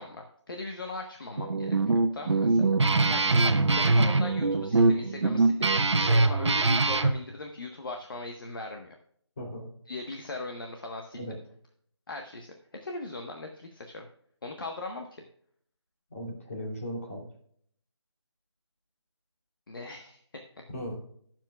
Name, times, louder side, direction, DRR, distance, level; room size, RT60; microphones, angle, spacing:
voice 1, 0.0-9.0 9.9-11.2 12.1-12.5 12.8-14.1 14.4-15.2 19.7-20.2, left 2 dB, 50° left, 3 dB, 1.2 m, -39 dB
Guitar, 1.4-7.1, right 3 dB, 80° right, 1.1 m, -23 dB
voice 2, 9.4-9.7 11.1-11.4 16.1-17.3 20.7-21.0, equal, 30° left, -1 dB, 3.0 m, -37 dB
20.5 x 7.5 x 2.3 m, 0.64 s
figure-of-eight pair, 175°, 15 cm